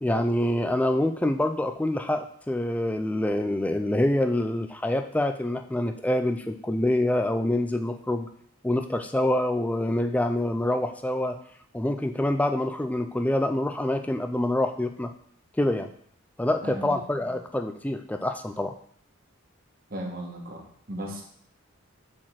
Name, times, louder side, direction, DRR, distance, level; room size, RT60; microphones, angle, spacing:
voice 1, 0.0-8.3 8.6-11.4 11.7-15.1 15.6-15.9 16.4-18.7, left 1 dB, 5° left, 7 dB, 0.4 m, -26 dB
voice 2, 16.6-17.3 19.9-21.2, right 1 dB, 45° right, 1 dB, 1.4 m, -37 dB
6.1 x 4.3 x 6.2 m, 0.63 s
head